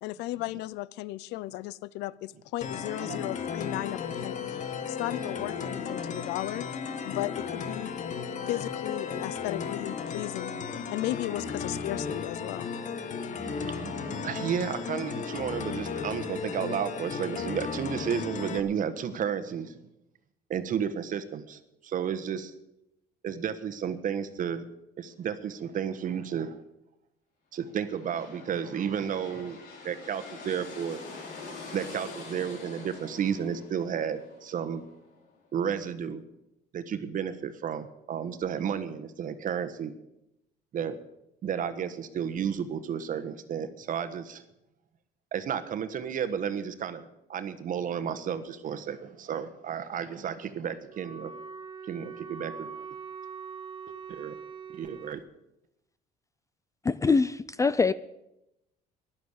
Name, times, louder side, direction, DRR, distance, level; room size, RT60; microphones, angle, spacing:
voice 1, 0.0-4.5 4.9-6.7 7.0-7.9 8.5-10.5 10.9-12.7, left 16 dB, 90° left, 0.4 m, -35 dB
sound 1, 2.6-18.6, left 6 dB, 45° left, 1.3 m, -35 dB
voice 2, 13.3-19.8 20.5-22.5 23.2-24.6 25.0-26.6 27.5-29.6 29.8-31.0 31.7-34.8 35.5-36.2 36.7-39.9 40.7-41.0 41.4-44.4 45.3-51.3 51.9-52.8 54.1-54.4 54.7-55.2, right 8 dB, 50° right, 1.3 m, -32 dB
sound 2, 27.7-35.4, left 4 dB, 65° left, 4.8 m, -45 dB
Wind instrument woodwind instrument, 50.9-55.2, right 6 dB, 30° right, 0.9 m, -42 dB
voice 3, 56.8-57.9, left 4 dB, 20° left, 0.4 m, -24 dB
14.5 x 11.5 x 6.6 m
cardioid pair, 110°, 17 cm